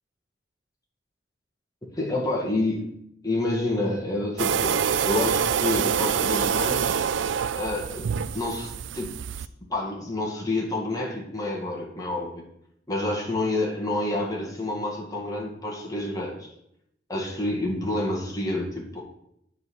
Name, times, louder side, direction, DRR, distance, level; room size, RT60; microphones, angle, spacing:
voice 1, 2.0-2.9 3.2-7.0 7.5-8.1 8.3-9.1 9.7-12.4 12.9-16.5 17.1-19.0, left 2 dB, 20° left, -2 dB, 1.9 m, -28 dB
sound 1, 4.4-9.5, right 7 dB, 85° right, 0.4 m, -26 dB
9.4 x 4.0 x 7.2 m, 0.77 s
head